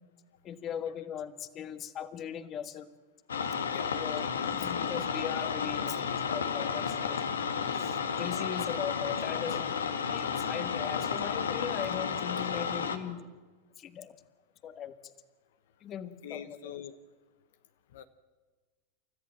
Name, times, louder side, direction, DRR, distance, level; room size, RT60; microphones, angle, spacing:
voice 1, 0.4-2.9 3.9-4.2 4.5-13.3 13.8-14.2 14.6-15.1 15.8-16.7, left 8 dB, 35° left, 11 dB, 1.6 m, -39 dB
sound 1, 3.3-13.0, left 6 dB, 90° left, 1.6 m, -32 dB
voice 2, 16.2-16.9 17.9-18.0, left 10 dB, 75° left, 10 dB, 1.1 m, -43 dB
30.0 x 14.0 x 7.5 m, 1.4 s
hypercardioid pair, 105°, 0 cm